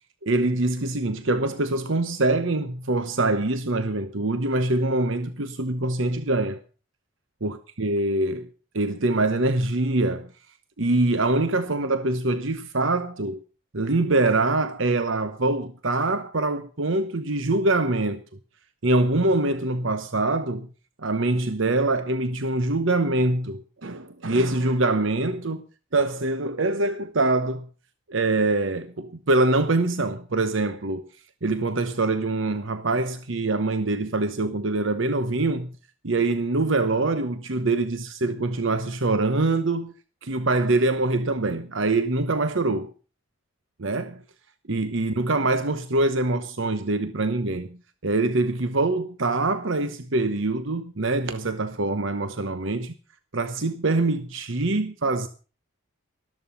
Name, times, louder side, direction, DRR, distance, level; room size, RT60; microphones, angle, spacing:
voice 1, 0.2-6.6 7.4-10.3 10.8-13.4 13.7-18.2 18.8-20.7 21.0-25.6 25.9-27.7 28.1-31.0 31.4-35.7 36.0-39.9 40.2-42.9 43.8-44.2 44.7-47.8 48.0-52.9 53.3-55.3, right 2 dB, 65° right, 1.0 m, -24 dB
13.5 x 13.0 x 5.5 m
head